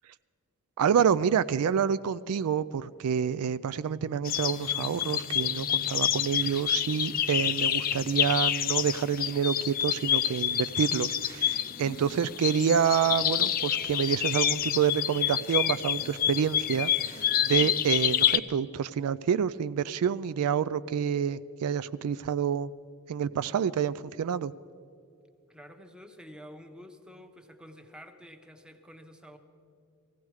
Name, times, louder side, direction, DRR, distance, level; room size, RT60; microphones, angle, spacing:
voice 1, 0.8-22.7 23.1-24.5, right 7 dB, 75° right, 16 dB, 0.3 m, -28 dB
sound 1, 4.2-18.4, left 10 dB, 40° left, 0.4 m, -28 dB
voice 2, 25.5-29.4, equal, 5° right, 5 dB, 0.9 m, -49 dB
18.5 x 16.0 x 4.8 m, 2.5 s
head